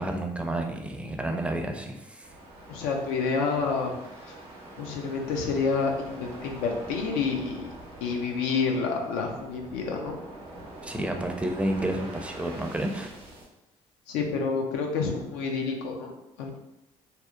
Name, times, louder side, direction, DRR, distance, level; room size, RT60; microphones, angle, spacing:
voice 1, 0.0-2.3 10.8-13.1, right 1 dB, 10° right, 3 dB, 0.4 m, -30 dB
sound 1, 2.2-13.5, right 1 dB, 80° right, 0.7 m, -44 dB
voice 2, 2.7-4.3 4.8-7.7 8.0-10.2 11.9-12.0 14.1-16.5, left 4 dB, 85° left, 2 dB, 0.4 m, -29 dB
2.7 x 2.0 x 2.3 m, 0.89 s
hypercardioid pair, 60°, 15 cm